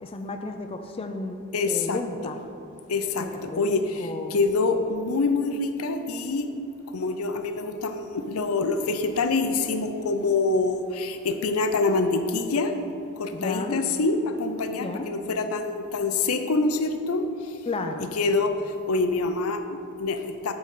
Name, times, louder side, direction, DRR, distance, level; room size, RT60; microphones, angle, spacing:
voice 1, 0.0-2.4 3.2-4.4 13.3-13.8 14.7-15.1 17.7-18.1, left 2 dB, 25° left, 5 dB, 0.4 m, -33 dB
voice 2, 1.5-2.0 2.9-6.5 6.9-12.7 13.2-17.2 18.0-18.6 18.9-20.5, left 3 dB, 75° left, 8 dB, 0.6 m, -26 dB
8.9 x 4.0 x 6.7 m, 2.6 s
head